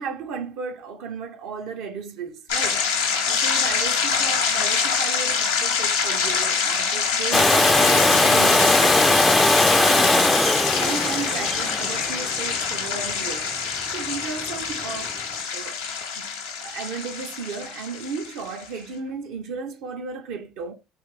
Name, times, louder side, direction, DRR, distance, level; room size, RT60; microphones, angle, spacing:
voice 1, 0.0-2.9 3.2-9.3 9.8-10.1 10.5-13.5 13.9-15.2 15.5-15.8 16.1-20.7, right 5 dB, 70° right, 0.6 m, -34 dB
sound 1, 2.5-18.7, left 6 dB, 90° left, 0.7 m, -25 dB
Domestic sounds home sounds, 7.3-13.1 15.1-15.2, left 2 dB, 15° left, 0.4 m, -19 dB
2.9 x 2.3 x 3.1 m
hypercardioid pair, 65°, 0 cm